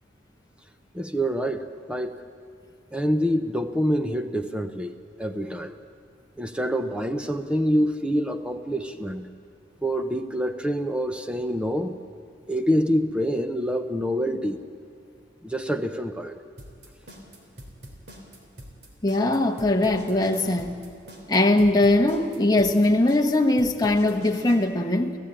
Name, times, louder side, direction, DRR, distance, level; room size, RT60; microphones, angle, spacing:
voice 1, 0.9-2.2 2.9-4.9 5.2-5.8 6.4-9.3 9.8-12.0 12.5-14.6 15.4-16.4, equal, 5° right, 7 dB, 0.9 m, -26 dB
sound 1, 16.6-24.6, equal, 60° right, 3.5 m, -43 dB
voice 2, 19.0-20.8 21.3-25.2, left 2 dB, 20° left, 3 dB, 1.2 m, -21 dB
29.5 x 15.0 x 9.0 m, 2.3 s
head